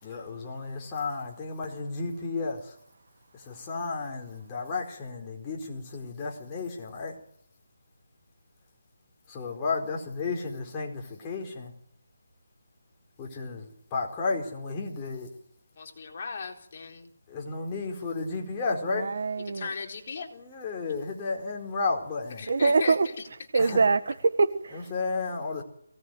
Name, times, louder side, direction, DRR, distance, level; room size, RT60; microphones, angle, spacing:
voice 1, 0.0-2.7 3.3-7.1 9.3-11.7 13.2-15.3 17.3-19.1 20.3-22.5 23.6-23.8 24.7-25.6, left 4 dB, 15° left, 4.5 m, -33 dB
voice 2, 15.8-17.1 19.5-20.3 22.4-23.1 23.5-23.6, left 5 dB, 40° left, 4.0 m, -37 dB
voice 3, 18.9-19.7 22.5-23.1 23.5-24.8, right 4 dB, 55° right, 1.6 m, -24 dB
23.0 x 18.0 x 9.4 m
figure-of-eight pair, 170°, 0 cm